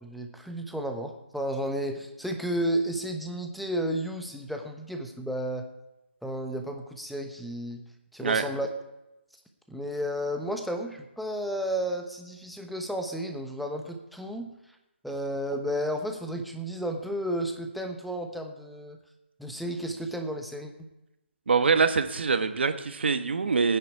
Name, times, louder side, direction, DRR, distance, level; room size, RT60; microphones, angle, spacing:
voice 1, 0.0-5.7 6.2-7.8 8.1-8.7 9.7-14.5 15.0-19.0 19.4-20.7, equal, ahead, 4 dB, 1.0 m, -32 dB
voice 2, 21.5-23.8, right 5 dB, 70° right, 9 dB, 1.4 m, -24 dB
18.5 x 9.7 x 4.7 m, 0.96 s
figure-of-eight pair, 150°, 6 cm